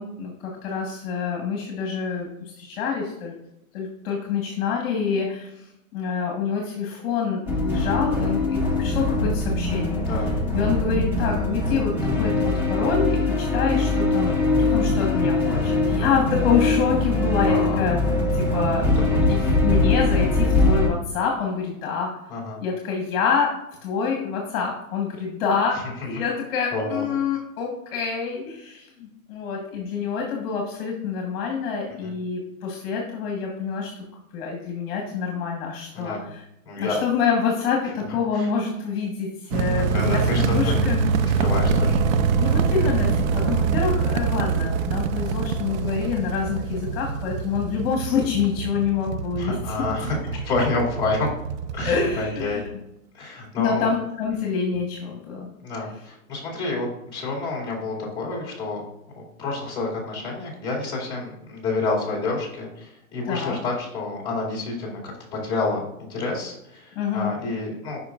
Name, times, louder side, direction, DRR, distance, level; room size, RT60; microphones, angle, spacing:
voice 1, 0.0-3.3 3.7-5.6 5.9-10.0 10.5-18.0 18.3-18.9 19.3-22.1 22.6-23.5 23.8-34.0 34.3-36.4 36.8-41.4 42.4-49.8 51.8-52.6 53.6-55.5 63.2-63.6 66.9-67.3, left 6 dB, 45° left, 0 dB, 1.4 m, -26 dB
sound 1, 7.5-20.9, left 2 dB, 5° right, 0.7 m, -22 dB
voice 2, 10.0-10.4 15.9-16.1 17.4-17.8 19.1-19.5 22.3-22.6 26.0-26.1 26.7-27.0 32.0-32.1 35.9-36.3 36.6-37.0 38.3-38.5 39.8-40.8 41.2-42.0 42.3-42.4 49.4-51.3 51.7-52.6 53.1-53.9 55.6-58.8 59.2-68.0, left 3 dB, 10° left, -4 dB, 2.3 m, -29 dB
sound 2, 39.5-52.7, right 5 dB, 70° right, 0.7 m, -25 dB
sound 3, 41.4-47.0, right 3 dB, 30° right, 0.9 m, -32 dB
9.6 x 5.6 x 2.4 m, 0.82 s
hypercardioid pair, 155°, 42 cm